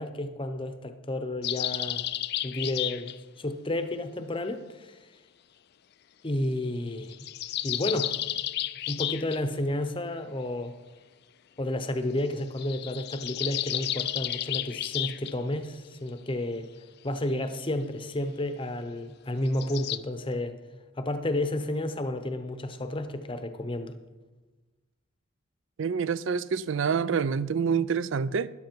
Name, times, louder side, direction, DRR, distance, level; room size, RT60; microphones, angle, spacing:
voice 1, 0.0-2.0 2.4-3.1 3.4-5.0 6.2-7.3 7.6-8.1 8.9-10.8 11.6-16.7 17.0-20.6 21.0-23.9, left 1 dB, 25° left, 0.7 m, -31 dB
sound 1, 1.4-3.2 6.9-9.4 12.6-15.3 19.5-20.0, left 13 dB, 50° left, 0.4 m, -32 dB
voice 2, 25.8-28.5, right 6 dB, 60° right, 0.4 m, -27 dB
13.0 x 10.5 x 4.6 m
head